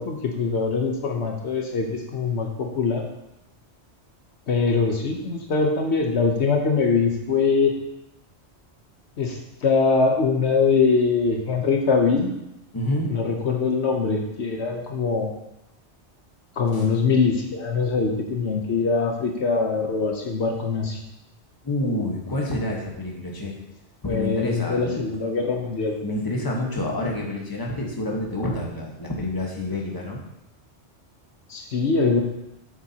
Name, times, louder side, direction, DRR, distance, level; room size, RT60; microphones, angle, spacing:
voice 1, 0.0-3.0 4.5-7.7 9.2-12.3 13.1-15.3 16.6-21.0 24.0-25.9 31.5-32.2, left 4 dB, 70° left, 2 dB, 1.2 m, -23 dB
voice 2, 12.7-13.1 16.7-16.9 21.6-23.6 24.0-25.1 26.0-30.2, left 1 dB, 20° left, -2 dB, 1.3 m, -28 dB
8.4 x 7.1 x 2.9 m, 0.88 s
omnidirectional pair, 1.2 m